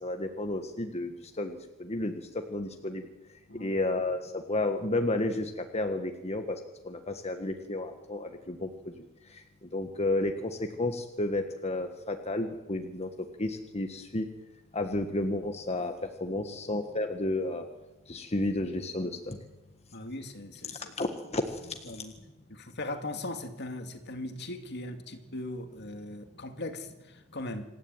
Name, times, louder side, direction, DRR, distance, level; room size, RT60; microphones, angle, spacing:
voice 1, 0.0-3.1 3.6-6.6 6.8-8.7 9.3-14.3 14.7-17.7 18.1-19.4 20.7-21.6 21.9-22.0, left 2 dB, 30° left, 1.6 m, -32 dB
voice 2, 3.5-3.8 19.9-20.9 21.9-22.1 22.5-26.9 27.3-27.6, left 2 dB, 55° left, 2.4 m, -39 dB
26.0 x 14.0 x 9.1 m
head